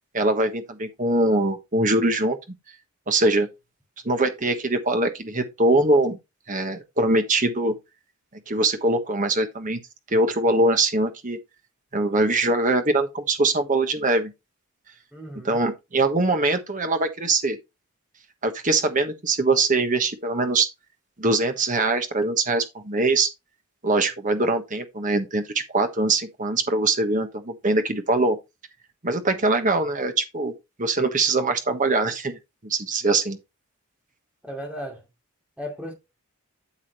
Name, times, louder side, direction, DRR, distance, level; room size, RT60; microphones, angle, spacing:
voice 1, 0.1-2.4 3.1-3.5 4.0-6.2 6.5-7.7 8.5-9.8 10.1-11.4 11.9-14.3 15.4-17.6 18.4-20.7 21.2-23.3 23.8-25.4 25.7-28.4 29.0-30.5 30.8-33.4, right 2 dB, 35° right, 1.2 m, -22 dB
voice 2, 15.1-15.6 34.4-35.1 35.6-35.9, equal, 5° right, 2.6 m, -35 dB
8.3 x 7.3 x 3.0 m
head